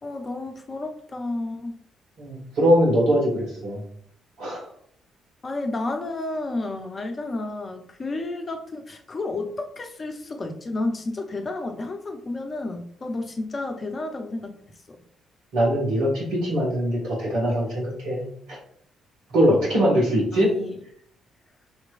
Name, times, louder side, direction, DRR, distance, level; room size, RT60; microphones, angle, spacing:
voice 1, 0.0-1.8 5.4-14.5 14.9-15.0 20.3-20.8, left 2 dB, 35° left, 5 dB, 0.7 m, -31 dB
voice 2, 2.2-3.8 4.4-4.6 15.5-18.6 19.3-20.5, equal, 65° right, -4 dB, 1.5 m, -22 dB
5.1 x 3.1 x 2.5 m, 0.65 s
figure-of-eight pair, 40°, 0 cm